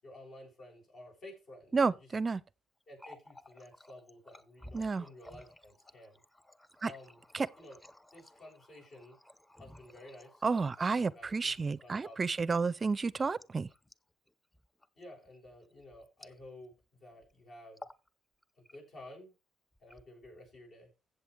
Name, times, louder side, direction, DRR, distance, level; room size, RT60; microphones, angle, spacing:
voice 1, 0.0-1.8 2.9-6.2 6.8-7.8 8.1-9.2 9.6-10.5 10.8-12.6 15.0-17.9 18.6-19.3 19.8-20.9, left 1 dB, 60° left, 7.4 m, -53 dB
voice 2, 1.7-2.4 4.7-5.1 6.8-6.9 7.3-7.5 10.4-13.7, right 4 dB, 35° right, 0.4 m, -31 dB
Water tap faucet, 2.8-16.8 17.1-17.3 17.7-18.1 18.4-19.1 19.7-20.5, left 1 dB, 10° left, 0.8 m, -56 dB
14.5 x 7.6 x 3.4 m
cardioid pair, 90°, 0 cm